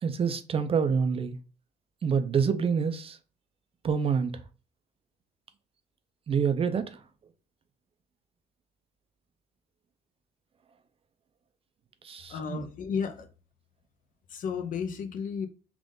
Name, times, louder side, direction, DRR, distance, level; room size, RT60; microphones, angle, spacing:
voice 1, 0.0-1.4 2.0-3.2 3.8-4.4 6.3-7.0 12.0-12.7, right 6 dB, 35° right, 0.5 m, -27 dB
voice 2, 12.3-13.3 14.3-15.5, left 6 dB, 50° left, 0.7 m, -33 dB
3.6 x 2.5 x 3.8 m
cardioid pair, 110°, 17 cm